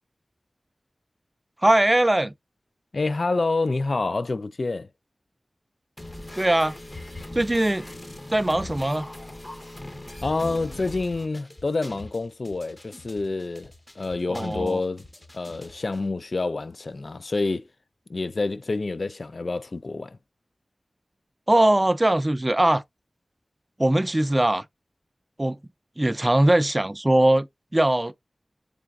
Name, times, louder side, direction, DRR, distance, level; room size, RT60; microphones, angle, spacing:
voice 1, 1.6-2.3 6.4-6.8 7.3-7.9 8.3-9.1 14.3-14.8 21.5-22.8 23.8-24.6 25.4-25.6 26.0-27.5 27.7-28.1, right 1 dB, 25° right, 0.3 m, -21 dB
voice 2, 2.9-4.9 10.2-15.0 15.3-17.7 18.1-20.2, left 3 dB, 70° left, 0.3 m, -28 dB
sound 1, 6.0-16.0, left 1 dB, 30° left, 0.6 m, -41 dB
3.9 x 3.4 x 2.3 m
wide cardioid pair, 55°, 0 cm